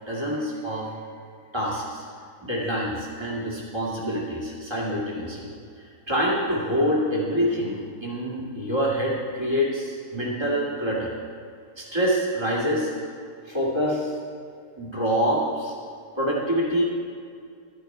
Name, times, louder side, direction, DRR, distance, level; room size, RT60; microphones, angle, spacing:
voice 1, 0.1-0.9 1.5-2.0 2.4-5.5 5.8-11.1 11.8-12.9 13.5-14.1 14.8-15.7 16.2-16.8, equal, 15° right, -4 dB, 2.3 m, -26 dB
12.5 x 10.0 x 4.5 m, 2.3 s
omnidirectional pair, 1.6 m